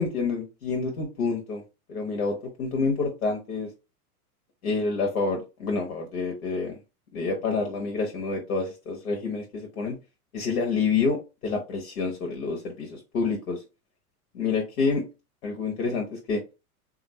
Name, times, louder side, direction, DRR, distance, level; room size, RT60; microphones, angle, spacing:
voice 1, 0.0-1.6 1.9-3.7 4.6-6.8 7.1-10.0 10.3-13.6 14.3-15.1 15.4-16.4, left 4 dB, 65° left, 2 dB, 1.0 m, -28 dB
3.7 x 2.5 x 3.1 m, 0.27 s
figure-of-eight pair, 90°, 45 cm